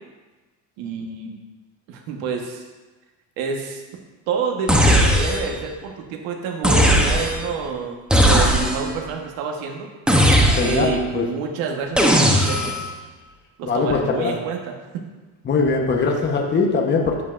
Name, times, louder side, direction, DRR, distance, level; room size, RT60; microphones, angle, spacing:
voice 1, 0.8-1.4 1.9-2.6 3.4-3.8 4.3-9.9 10.6-12.9 13.6-14.7, right 5 dB, 90° right, 1 dB, 1.3 m, -28 dB
sound 1, 4.7-5.6 6.6-7.5 8.1-9.0 10.1-11.0 12.0-12.9, equal, ahead, 0.7 m, -17 dB
voice 2, 10.5-11.3 13.7-14.3 15.4-17.2, left 4 dB, 25° left, 1 dB, 0.9 m, -21 dB
9.8 x 8.2 x 2.5 m, 1.2 s
cardioid pair, 135°, 44 cm